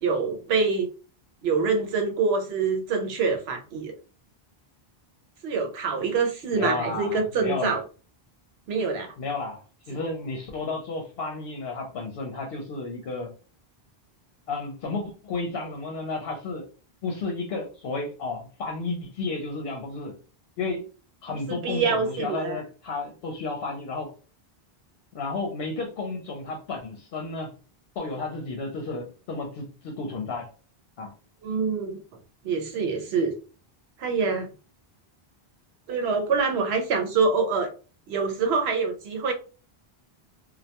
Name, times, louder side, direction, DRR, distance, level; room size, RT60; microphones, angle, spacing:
voice 1, 0.0-0.9 1.4-3.9 5.4-7.8 8.7-9.1 21.3-22.6 31.4-32.0 32.4-33.3 34.0-34.5 35.9-37.7 38.1-39.3, right 4 dB, 85° right, 4 dB, 0.9 m, -25 dB
voice 2, 6.5-7.8 9.2-13.3 14.5-16.7 17.0-20.1 20.6-20.8 21.2-24.1 25.1-27.5 28.0-30.5 31.0-31.1, left 3 dB, 70° left, 1 dB, 0.8 m, -32 dB
2.2 x 2.1 x 2.8 m, 0.36 s
omnidirectional pair, 1.0 m